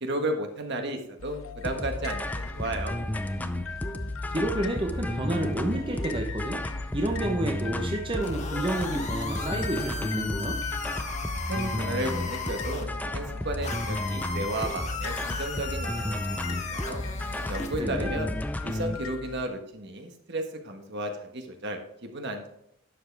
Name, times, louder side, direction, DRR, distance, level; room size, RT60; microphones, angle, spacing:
voice 1, 0.0-3.0 11.4-17.0 17.5-18.3 18.6-22.5, right 1 dB, 55° right, 4 dB, 1.5 m, -33 dB
sound 1, 1.2-19.5, left 5 dB, 75° left, 0.7 m, -42 dB
sound 2, 1.6-19.0, left 1 dB, 10° left, 0.5 m, -33 dB
voice 2, 4.3-6.6 6.9-10.6 17.8-18.1, right 1 dB, 25° right, 2 dB, 1.0 m, -30 dB
sound 3, 8.2-12.8 13.6-17.8, left 4 dB, 35° left, 1.2 m, -36 dB
11.0 x 7.4 x 3.4 m, 0.78 s
head